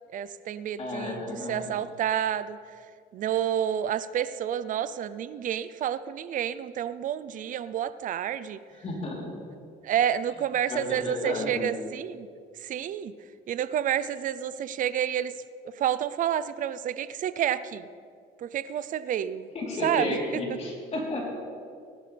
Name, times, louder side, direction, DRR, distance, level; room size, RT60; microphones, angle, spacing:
voice 1, 0.1-2.6 3.1-8.6 9.8-12.3 12.6-13.1 13.5-15.3 15.7-17.9 18.4-19.5 19.8-20.4, right 10 dB, 50° right, 15 dB, 0.5 m, -29 dB
voice 2, 0.8-1.8 8.8-9.3 10.7-11.8 19.5-21.4, left 2 dB, 40° left, -3 dB, 3.6 m, -32 dB
18.5 x 12.0 x 3.4 m, 2.3 s
cardioid pair, 110°, 17 cm